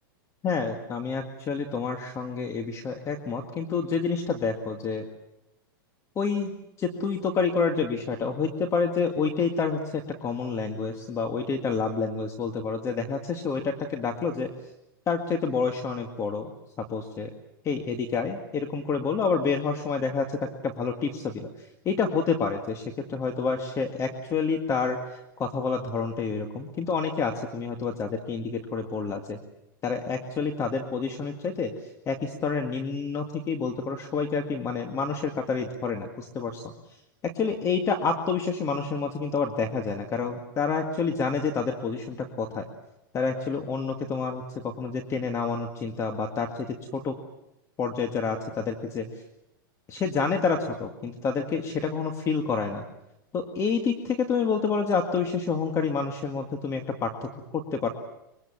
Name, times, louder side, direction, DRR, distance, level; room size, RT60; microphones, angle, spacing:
voice 1, 0.4-5.0 6.2-14.5 15.1-16.5 16.9-17.3 17.6-21.5 21.9-29.4 29.8-31.7 32.1-36.6 37.2-42.6 43.1-47.1 47.8-49.1 49.9-52.8 53.3-57.9, left 5 dB, 25° left, 4 dB, 2.0 m, -28 dB
24.5 x 23.0 x 7.3 m, 0.88 s
hypercardioid pair, 135°, 12 cm